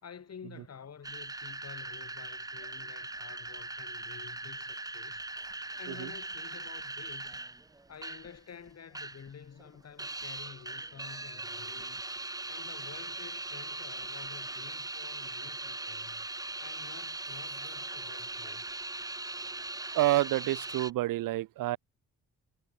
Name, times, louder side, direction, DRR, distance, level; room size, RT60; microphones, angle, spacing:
voice 1, 0.0-7.4 7.9-12.0 12.5-16.3 16.6-18.8, left 7 dB, 50° left, 3.5 m, -50 dB
sound 1, 1.0-8.4 8.7-9.3 9.6-20.9, right 2 dB, 10° right, 0.8 m, -40 dB
voice 2, 19.9-21.8, right 16 dB, 75° right, 0.9 m, -28 dB
supercardioid pair, 65°, 33 cm